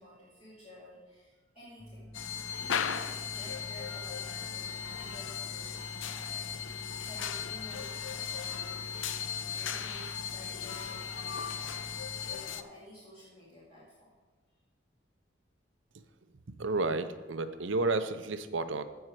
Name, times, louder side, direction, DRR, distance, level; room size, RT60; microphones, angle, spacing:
voice 1, 0.0-2.1 2.5-8.7 9.5-11.4 12.2-14.1, equal, 30° left, -9 dB, 2.5 m, -52 dB
sound 1, 1.8-12.3, left 1 dB, 10° left, 0.5 m, -48 dB
sound 2, 2.1-12.6, left 8 dB, 80° left, 0.5 m, -37 dB
voice 2, 16.6-18.8, right 3 dB, 75° right, 11 dB, 0.7 m, -31 dB
15.0 x 5.5 x 4.8 m, 1.3 s
head